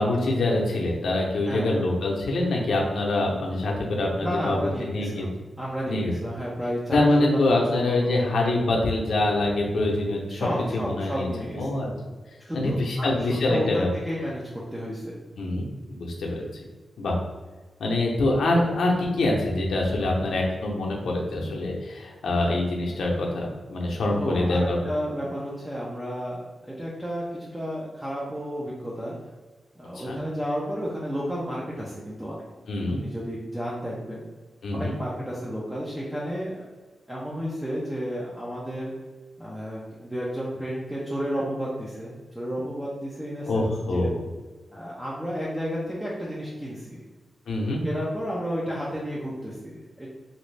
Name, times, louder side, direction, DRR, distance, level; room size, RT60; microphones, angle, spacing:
voice 1, 0.0-4.6 4.8-5.3 5.9-6.1 6.9-10.5 10.7-11.3 11.5-11.9 12.5-13.9 15.4-16.5 17.0-17.2 17.8-24.9 29.9-30.2 32.7-33.0 34.6-34.9 43.5-44.2 47.5-47.8, left 2 dB, 80° left, -1 dB, 0.7 m, -25 dB
voice 2, 1.5-1.9 4.2-5.3 5.6-8.1 10.3-11.7 12.4-13.2 13.4-14.4 14.7-15.2 24.2-29.1 29.8-32.5 33.0-34.3 34.7-36.7 37.1-38.9 39.4-44.1 44.7-47.0 47.8-50.1, equal, 10° right, -6 dB, 0.5 m, -32 dB
3.0 x 2.6 x 3.2 m, 1.3 s
wide cardioid pair, 150°, 0 cm